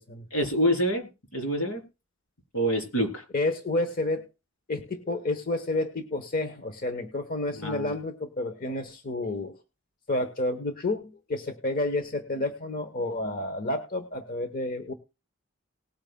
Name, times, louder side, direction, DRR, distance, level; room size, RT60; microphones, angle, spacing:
voice 1, 0.3-1.8 2.5-3.2 7.6-8.0, equal, 80° left, 5 dB, 3.5 m, -27 dB
voice 2, 3.3-4.3 4.7-9.6 10.1-14.9, left 2 dB, 45° left, 9 dB, 1.1 m, -30 dB
19.5 x 8.8 x 2.2 m, 0.27 s
head